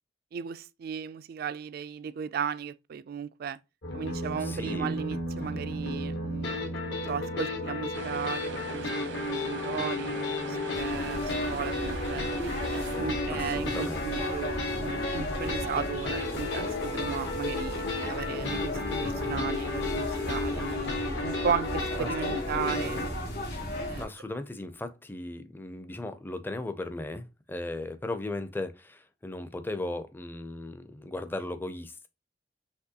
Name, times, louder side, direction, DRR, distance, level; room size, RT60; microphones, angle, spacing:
voice 1, 0.3-3.6 3.9-6.6 7.1-10.2 10.5-12.3 12.7-20.9 21.2-23.0 23.8-24.0, right 7 dB, 55° right, 0.3 m, -35 dB
sound 1, 3.8-23.1, left 2 dB, 75° left, 1.3 m, -33 dB
voice 2, 4.4-5.0 13.3-14.1 22.0-22.4 24.0-32.1, left 2 dB, 10° left, 0.4 m, -37 dB
sound 2, 7.9-13.0, right 4 dB, 90° right, 1.0 m, -41 dB
sound 3, 10.7-24.0, left 1 dB, 60° left, 2.0 m, -35 dB
5.9 x 3.0 x 2.8 m
head